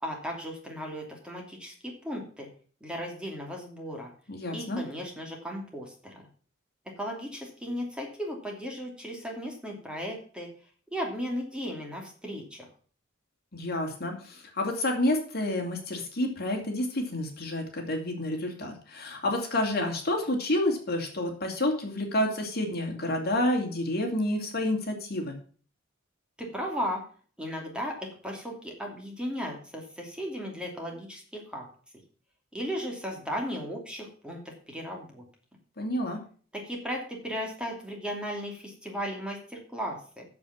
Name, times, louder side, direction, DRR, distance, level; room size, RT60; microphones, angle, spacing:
voice 1, 0.0-2.5 2.8-4.1 4.5-6.2 6.9-10.5 10.9-12.7 26.4-27.0 27.4-31.7 32.5-35.2 36.5-40.2, equal, 5° right, 0 dB, 2.7 m, -36 dB
voice 2, 4.3-4.8 13.5-25.4 35.8-36.2, left 1 dB, 55° left, 3 dB, 2.6 m, -29 dB
8.7 x 7.2 x 7.3 m, 0.43 s
head